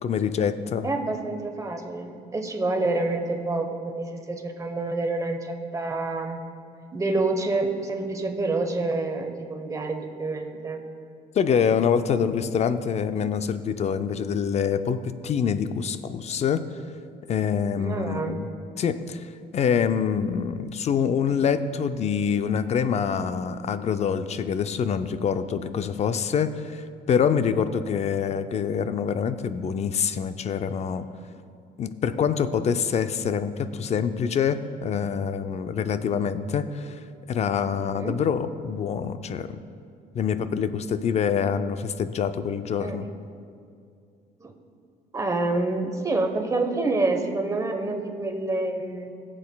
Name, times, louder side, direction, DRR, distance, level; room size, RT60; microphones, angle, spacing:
voice 1, 0.0-0.9 11.3-16.6 17.3-18.5 18.8-19.3 19.5-31.1 31.8-37.0 37.3-39.6 40.1-43.1, left 7 dB, 40° left, 11 dB, 0.5 m, -25 dB
voice 2, 0.8-6.4 6.9-10.8 17.8-18.4 37.8-38.2 42.8-43.1 44.4-44.5 45.1-49.2, right 2 dB, 20° right, 4 dB, 1.0 m, -28 dB
18.0 x 7.5 x 2.3 m, 2.4 s
cardioid pair, 110°, 17 cm